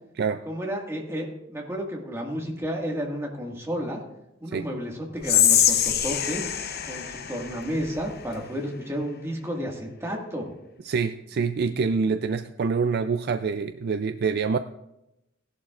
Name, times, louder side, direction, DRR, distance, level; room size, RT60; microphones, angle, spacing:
voice 1, 0.5-4.0 4.4-10.5, equal, 15° right, -1 dB, 1.8 m, -32 dB
Whispering, 5.2-8.4, left 9 dB, 50° left, 0.7 m, -24 dB
voice 2, 10.8-14.6, right 5 dB, 50° right, 9 dB, 0.4 m, -26 dB
16.5 x 11.5 x 2.4 m, 0.88 s
head